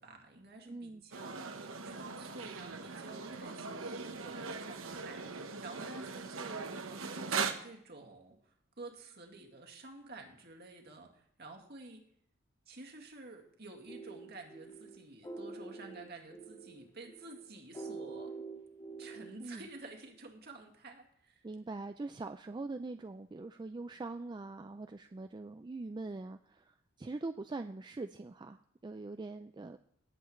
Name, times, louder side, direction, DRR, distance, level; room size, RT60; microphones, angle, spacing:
voice 1, 0.0-12.0 12.7-18.3 19.0-21.4, right 2 dB, 50° right, 2 dB, 2.1 m, -51 dB
voice 2, 0.7-1.0 19.4-19.7 21.4-29.8, right 3 dB, 20° right, 8 dB, 0.3 m, -43 dB
sound 1, 1.1-7.5, right 5 dB, 85° right, 1.1 m, -40 dB
sound 2, 13.9-19.4, right 3 dB, 25° left, 2.3 m, -46 dB
18.0 x 8.1 x 3.2 m, 0.69 s
head